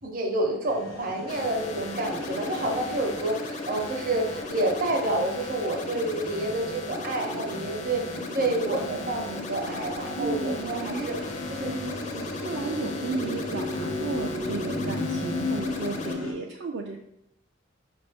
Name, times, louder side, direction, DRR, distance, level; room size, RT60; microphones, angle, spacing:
voice 1, 0.0-11.2 11.5-12.3, right 2 dB, 45° right, 1 dB, 0.8 m, -29 dB
sound 1, 0.7-16.3, left 2 dB, 80° left, 0.8 m, -36 dB
sound 2, 1.3-16.1, left 2 dB, 35° left, 0.4 m, -37 dB
voice 2, 10.2-11.1 11.7-11.9 12.4-17.0, right 4 dB, 60° right, 1 dB, 0.4 m, -34 dB
5.0 x 2.5 x 3.4 m, 0.83 s
head